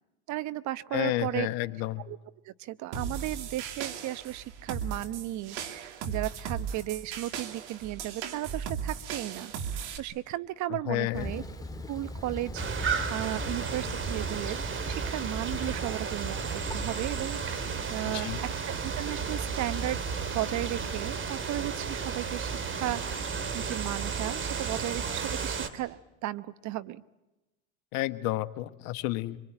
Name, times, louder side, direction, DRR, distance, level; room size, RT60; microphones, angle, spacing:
voice 1, 0.3-1.5 2.1-2.2 2.4-9.5 10.0-11.4 11.9-14.6 14.9-17.4 17.9-20.0 20.3-27.0, right 15 dB, 55° right, 15 dB, 1.0 m, -35 dB
voice 2, 0.9-2.0 10.9-11.3 18.1-18.4 27.9-29.4, left 16 dB, 65° left, 12 dB, 1.3 m, -31 dB
sound 1, 2.9-10.0, right 7 dB, 75° right, 2.6 m, -37 dB
Thunder, 11.1-20.9, left 1 dB, 10° left, 2.4 m, -41 dB
sound 2, 12.6-25.7, right 5 dB, 35° right, 2.7 m, -33 dB
25.0 x 23.5 x 8.9 m, 1.0 s
hypercardioid pair, 80°, 35 cm